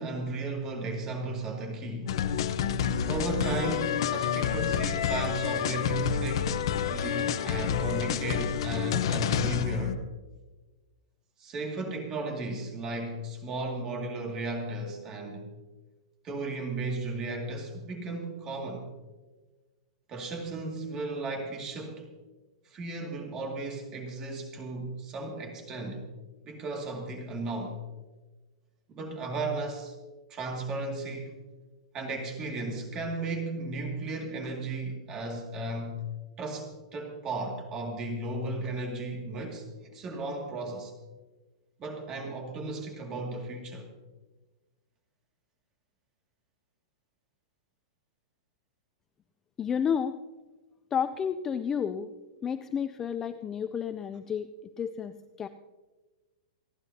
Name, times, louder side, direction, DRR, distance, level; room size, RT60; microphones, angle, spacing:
voice 1, 0.0-2.1 3.0-6.6 6.8-10.0 11.4-15.5 16.2-18.9 20.1-22.1 22.7-26.0 26.5-27.8 28.9-30.0 30.3-31.3 31.9-36.0 36.4-39.7 39.9-40.9 41.8-43.9, right 2 dB, 20° right, 2 dB, 2.2 m, -35 dB
sound 1, 2.1-10.0, left 8 dB, 55° left, 0.8 m, -29 dB
voice 2, 49.6-50.2 50.9-52.1 52.4-54.5 54.8-55.5, left 7 dB, 15° left, 10 dB, 0.3 m, -31 dB
28.0 x 11.0 x 2.8 m, 1.2 s
supercardioid pair, 170°, 3 cm